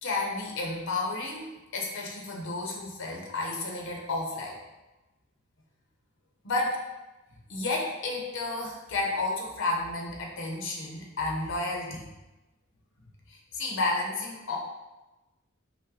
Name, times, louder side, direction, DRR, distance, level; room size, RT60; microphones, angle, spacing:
voice 1, 0.0-4.6 6.4-6.8 7.5-12.1 13.3-14.6, left 2 dB, 60° left, -1 dB, 0.8 m, -31 dB
5.5 x 2.2 x 3.8 m, 1.1 s
head